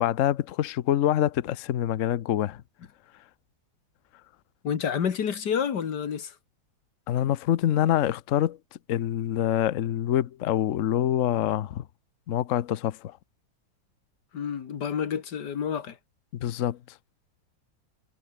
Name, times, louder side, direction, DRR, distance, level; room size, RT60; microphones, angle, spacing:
voice 1, 0.0-2.6 7.1-8.6 8.9-11.8 12.3-13.2 16.3-16.8, left 11 dB, 80° left, 0.7 m, -25 dB
voice 2, 4.6-6.4 14.3-16.0, left 7 dB, 55° left, 2.0 m, -29 dB
omnidirectional pair, 2.3 m